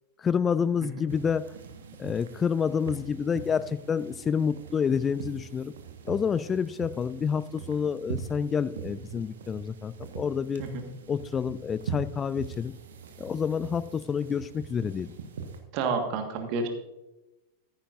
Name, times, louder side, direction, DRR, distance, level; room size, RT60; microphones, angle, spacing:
voice 1, 0.2-1.5 2.0-5.7 6.0-10.6 11.1-12.7 13.2-15.1, left 7 dB, 20° left, 17 dB, 0.4 m, -28 dB
sound 1, 1.1-15.6, right 6 dB, 65° right, 1.4 m, -42 dB
voice 2, 15.7-16.7, right 4 dB, 45° right, 5 dB, 1.6 m, -29 dB
14.0 x 10.5 x 2.6 m, 0.98 s
figure-of-eight pair, 90°, 0 cm